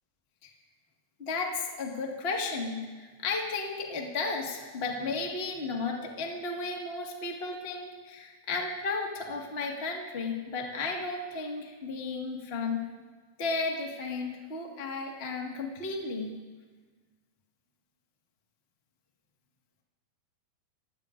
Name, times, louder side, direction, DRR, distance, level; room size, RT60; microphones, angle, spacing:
voice 1, 1.2-12.8 13.4-16.3, left 3 dB, 40° left, 0 dB, 0.8 m, -34 dB
29.5 x 16.0 x 2.6 m, 1.4 s
omnidirectional pair, 4.2 m